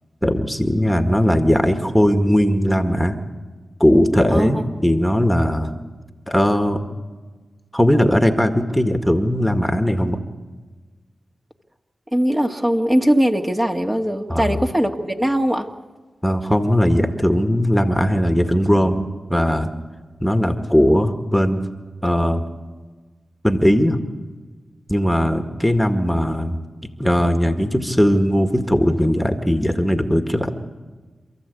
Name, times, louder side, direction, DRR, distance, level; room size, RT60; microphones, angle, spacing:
voice 1, 0.2-3.2 3.8-5.7 6.3-6.9 7.7-10.2 14.3-14.6 16.2-19.7 20.2-21.6 22.0-22.4 23.4-24.0 24.9-26.6 27.0-30.5, equal, 5° left, 7 dB, 1.9 m, -18 dB
voice 2, 12.1-15.7, equal, 20° right, 3 dB, 2.0 m, -20 dB
27.5 x 14.5 x 8.5 m, 1.4 s
cardioid pair, 45°, 0 cm